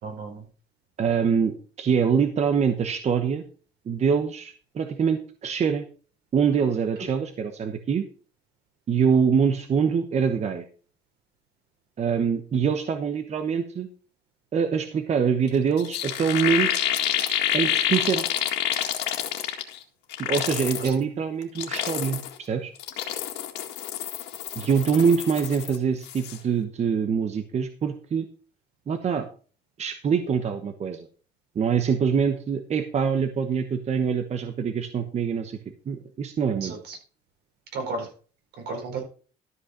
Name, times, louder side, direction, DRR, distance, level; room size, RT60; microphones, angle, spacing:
voice 1, 0.0-0.5 20.8-20.9 36.6-37.0 37.7-38.1 38.6-39.0, right 3 dB, 75° right, 2 dB, 4.5 m, -33 dB
voice 2, 1.0-3.4 3.9-5.8 6.3-8.0 8.9-10.6 12.0-13.9 14.5-16.7 17.5-18.2 20.2-22.7 24.6-28.3 28.9-29.3 29.8-31.1 31.5-35.6 35.9-36.8, right 6 dB, 40° right, 8 dB, 1.1 m, -24 dB
sound 1, 15.5-15.6 15.8-19.8 20.1-20.9 21.4-22.4 22.8-25.8 26.0-26.4, left 11 dB, 80° left, 1.9 m, -28 dB
13.0 x 5.6 x 5.1 m, 0.40 s
cardioid pair, 110°, 17 cm